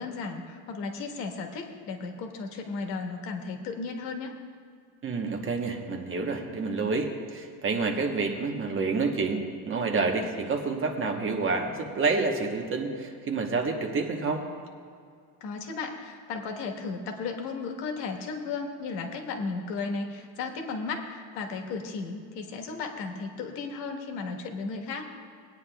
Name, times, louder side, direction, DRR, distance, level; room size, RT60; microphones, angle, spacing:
voice 1, 0.0-4.4 15.4-25.0, left 4 dB, 85° left, 4 dB, 1.4 m, -35 dB
voice 2, 5.0-14.5, right 4 dB, 30° right, 2 dB, 1.0 m, -28 dB
19.5 x 9.4 x 2.3 m, 2.1 s
cardioid pair, 155°, 41 cm